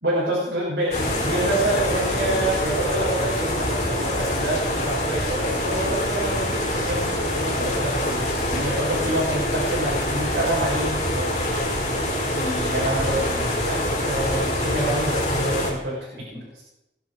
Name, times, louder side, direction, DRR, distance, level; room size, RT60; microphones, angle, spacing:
voice 1, 0.0-11.3 12.3-16.6, right 1 dB, 65° right, -6 dB, 5.5 m, -27 dB
sound 1, 0.9-15.7, left 1 dB, 40° left, 5.1 m, -25 dB
21.0 x 10.5 x 4.7 m, 0.90 s
head